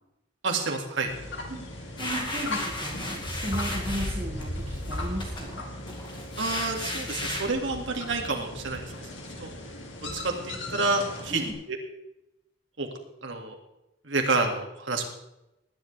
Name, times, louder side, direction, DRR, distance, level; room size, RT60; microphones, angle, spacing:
voice 1, 0.4-1.1 6.4-8.8 9.4-9.5 10.1-11.4 11.7-11.8 12.8-12.9 13.2-13.5 14.0-15.0, right 3 dB, 70° right, 2 dB, 2.3 m, -28 dB
sound 1, 1.1-11.5, left 1 dB, 70° left, 2.4 m, -37 dB
voice 2, 1.5-5.6 11.3-11.5, right 1 dB, 30° right, -2 dB, 1.9 m, -35 dB
sound 2, 2.0-4.4 4.8-7.5, left 1 dB, 25° left, 2.4 m, -35 dB
20.0 x 10.5 x 3.4 m, 0.90 s
head